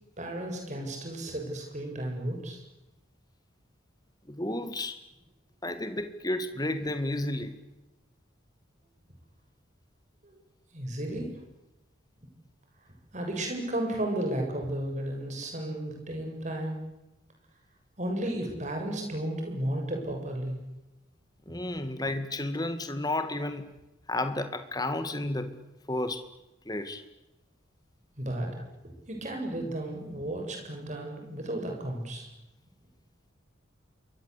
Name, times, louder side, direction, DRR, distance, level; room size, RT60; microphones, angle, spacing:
voice 1, 0.2-2.6 10.2-10.3 10.7-11.3 13.1-16.8 18.0-20.6 28.2-32.3, right 1 dB, 35° right, 2 dB, 7.7 m, -33 dB
voice 2, 4.3-5.0 5.6-7.5 21.5-23.6 24.1-25.5 25.9-26.2 26.7-27.0 29.6-29.7, left 1 dB, 20° left, 9 dB, 2.1 m, -32 dB
27.5 x 23.0 x 8.5 m, 0.98 s
head